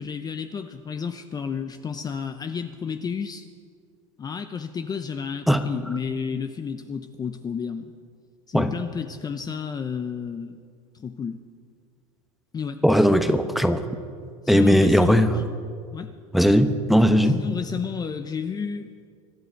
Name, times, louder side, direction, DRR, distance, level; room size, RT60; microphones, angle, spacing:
voice 1, 0.0-3.5 4.2-7.9 8.5-10.6 10.9-11.4 12.5-12.8 14.4-15.3 15.9-16.1 17.2-18.9, left 6 dB, 20° left, 8 dB, 0.7 m, -31 dB
voice 2, 12.8-13.9 14.5-15.3 16.3-17.4, equal, ahead, 8 dB, 0.9 m, -18 dB
25.0 x 11.0 x 4.6 m, 2.2 s
supercardioid pair, 110°, 17 cm